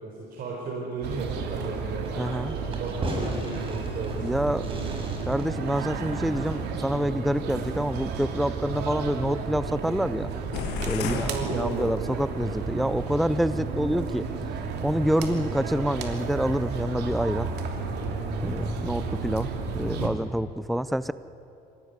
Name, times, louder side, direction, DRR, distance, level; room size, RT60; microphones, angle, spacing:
voice 1, 0.0-2.1 2.5-5.0 7.4-7.5 11.0-11.9 12.7-12.9 15.3-15.6, right 3 dB, 60° right, -2 dB, 4.5 m, -35 dB
sound 1, 1.0-20.1, right 4 dB, 75° right, 2.9 m, -32 dB
Fireworks, 2.0-7.3, right 1 dB, 30° right, 5.5 m, -38 dB
voice 2, 2.2-2.6 4.2-4.7 5.3-10.3 10.8-14.3 14.8-17.5 18.4-21.1, equal, ahead, 15 dB, 0.5 m, -27 dB
sound 2, 10.5-12.4, left 8 dB, 85° left, 1.9 m, -34 dB
26.0 x 17.5 x 9.6 m, 2.9 s
cardioid pair, 110°, 17 cm